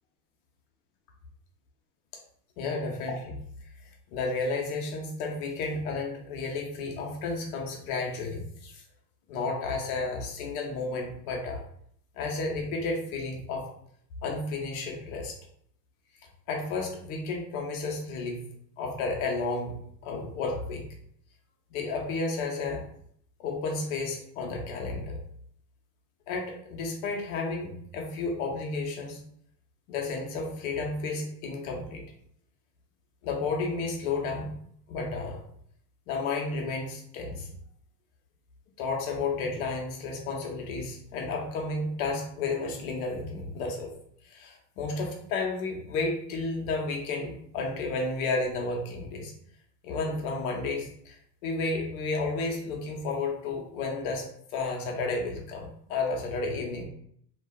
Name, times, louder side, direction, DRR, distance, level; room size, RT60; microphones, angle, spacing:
voice 1, 2.6-3.4 4.1-8.8 9.3-11.6 12.2-13.6 14.2-15.3 16.5-18.4 18.8-19.7 20.0-20.9 21.7-22.8 23.4-25.2 26.3-29.2 29.9-32.0 33.2-34.5 34.9-35.4 36.1-37.5 38.8-43.9 44.3-49.3 49.8-51.2 51.4-54.3 54.5-56.9, left 3 dB, 60° left, 1 dB, 0.8 m, -32 dB
2.6 x 2.3 x 2.3 m, 0.65 s
hypercardioid pair, 105°, 50 cm